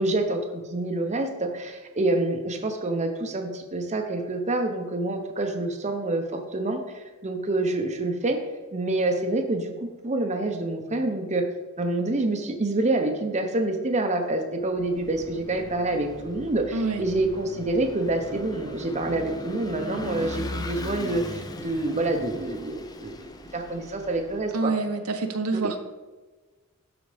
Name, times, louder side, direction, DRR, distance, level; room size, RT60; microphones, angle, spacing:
voice 1, 0.0-8.4 8.7-11.4 11.8-24.7 25.5-25.6, right 2 dB, 30° right, 4 dB, 0.7 m, -27 dB
Vehicle / Engine, 14.7-24.5, left 2 dB, 15° left, 0.4 m, -39 dB
voice 2, 16.7-17.0 24.5-25.8, right 3 dB, 75° right, 6 dB, 0.7 m, -27 dB
12.0 x 4.2 x 3.3 m, 1.3 s
head